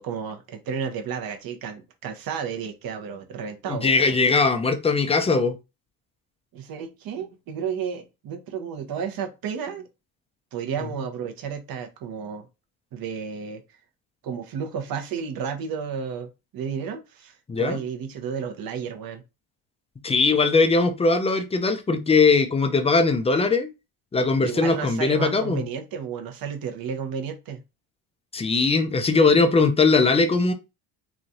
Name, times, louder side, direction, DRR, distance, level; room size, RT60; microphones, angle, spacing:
voice 1, 0.0-4.2 6.5-9.9 10.5-12.5 12.9-13.6 14.2-19.2 24.4-27.6, right 7 dB, 50° right, 0.8 m, -32 dB
voice 2, 3.7-5.6 17.5-17.8 20.0-23.7 24.1-25.6 28.3-30.5, left 4 dB, 15° left, 0.4 m, -20 dB
3.1 x 2.4 x 2.6 m
supercardioid pair, 90°, 45 cm